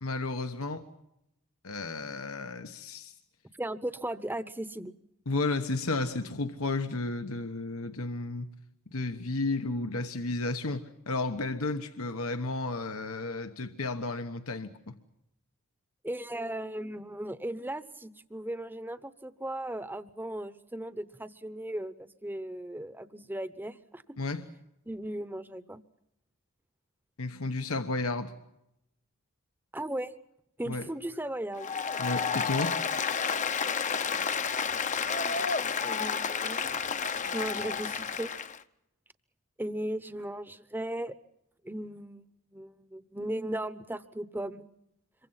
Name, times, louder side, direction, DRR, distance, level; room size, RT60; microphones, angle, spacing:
voice 1, 0.0-0.9 1.6-3.1 5.3-8.5 8.9-10.8 11.1-14.9 24.2-24.5 27.2-28.3 30.7-30.9 32.0-32.8, left 3 dB, 80° left, 1.2 m, -32 dB
voice 2, 3.6-5.0 16.0-24.0 24.9-25.8 29.7-30.1 30.6-31.7 34.1-34.3 35.4-36.7 37.2-38.3 39.6-41.1 41.6-42.3 42.5-44.7, right 1 dB, 10° right, 0.9 m, -37 dB
Applause, 31.6-38.6, left 6 dB, 35° left, 0.8 m, -31 dB
27.0 x 23.5 x 5.7 m
head